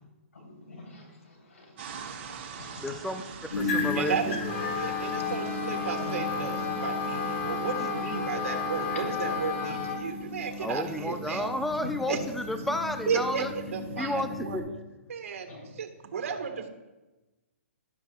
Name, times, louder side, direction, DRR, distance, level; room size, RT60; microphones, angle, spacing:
voice 1, 0.3-1.7 2.1-2.8 6.0-6.2 6.6-6.7 7.1-7.3 15.5-15.7, left 2 dB, 85° left, 0 dB, 3.8 m, -48 dB
sound 1, 1.8-14.6, right 5 dB, 50° right, 1.9 m, -46 dB
voice 2, 2.8-3.2 3.6-4.4 7.8-7.9 10.6-13.5 14.0-14.7, left 1 dB, ahead, 8 dB, 0.5 m, -32 dB
sound 2, 3.5-14.6, left 2 dB, 60° left, 3.2 m, -36 dB
voice 3, 4.0-11.5 12.1-12.2 13.1-13.4 13.7-14.6 15.1-15.5 15.8-16.7, right 6 dB, 75° right, 5 dB, 1.7 m, -33 dB
Wind instrument woodwind instrument, 4.4-10.0, left 5 dB, 35° left, 2.4 m, -33 dB
12.0 x 11.5 x 2.4 m, 1.1 s
hypercardioid pair, 135°, 7 cm